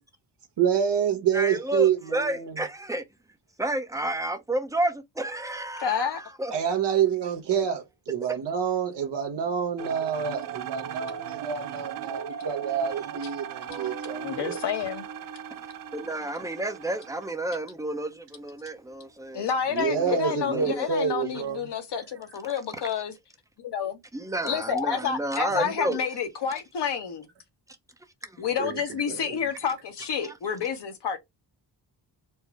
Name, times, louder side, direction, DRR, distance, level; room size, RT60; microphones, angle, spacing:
voice 1, 0.6-2.6 6.5-14.6 19.7-21.6 25.5-25.7 28.6-28.8 29.1-29.4, right 8 dB, 75° right, 1.2 m, -27 dB
voice 2, 1.3-3.0 3.6-6.5 15.9-19.4 19.8-20.9 24.1-26.0 28.2-28.4 30.2-30.3, right 1 dB, 10° right, 0.6 m, -31 dB
voice 3, 5.8-6.2 14.2-15.1 19.3-23.1 23.6-24.0 24.4-27.3 28.4-31.2, left 7 dB, 70° left, 1.1 m, -29 dB
sound 1, 9.8-17.3, right 9 dB, 55° right, 0.4 m, -38 dB
Guitar, 13.7-18.6, right 4 dB, 40° right, 1.5 m, -44 dB
4.5 x 2.0 x 4.6 m
wide cardioid pair, 155°, 42 cm